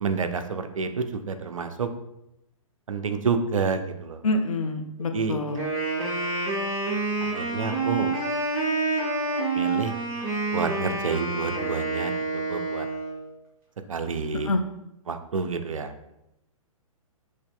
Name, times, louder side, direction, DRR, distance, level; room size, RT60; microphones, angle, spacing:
voice 1, 0.0-1.9 2.9-4.2 5.1-5.4 7.2-8.1 9.6-9.9 10.5-12.9 13.9-14.5 15.1-15.9, right 5 dB, 65° right, 9 dB, 0.4 m, -29 dB
voice 2, 4.2-5.6 14.4-14.6, left 2 dB, 75° left, 5 dB, 0.4 m, -26 dB
Wind instrument woodwind instrument, 5.5-13.2, right 3 dB, 25° right, 1.1 m, -28 dB
5.6 x 3.0 x 2.2 m, 0.86 s
figure-of-eight pair, 120°, 18 cm